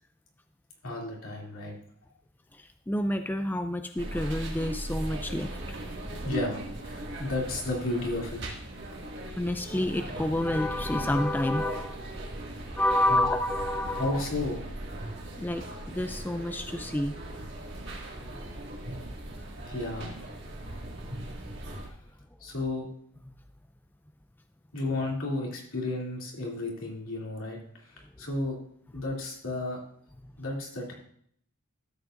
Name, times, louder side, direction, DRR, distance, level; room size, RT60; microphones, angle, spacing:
voice 1, 0.8-1.7 6.2-8.4 13.1-13.2 13.9-14.6 19.7-20.4 22.4-22.9 24.7-27.6 27.9-28.5 28.9-29.8 30.4-30.9, left 2 dB, 75° left, -2 dB, 2.7 m, -33 dB
voice 2, 2.5-5.8 9.4-12.0 12.8-14.2 15.4-17.1 21.2-21.4, left 1 dB, 10° left, 8 dB, 0.4 m, -29 dB
sound 1, 4.0-21.9, right 1 dB, 55° right, 2.0 m, -39 dB
13.0 x 7.7 x 2.5 m, 0.64 s
head